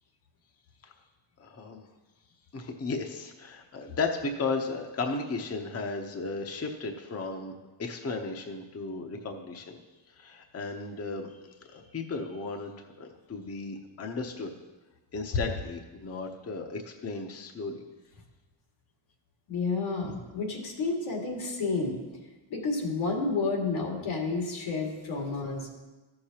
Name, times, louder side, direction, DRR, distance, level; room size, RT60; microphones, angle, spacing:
voice 1, 1.4-1.9 2.5-7.5 7.8-9.8 10.1-12.7 13.0-14.5 15.1-17.8, left 3 dB, 30° left, 4 dB, 0.8 m, -35 dB
voice 2, 19.5-22.0 22.5-25.7, left 3 dB, 85° left, 0 dB, 2.3 m, -30 dB
14.0 x 6.6 x 2.9 m, 1.2 s
cardioid pair, 95°, 47 cm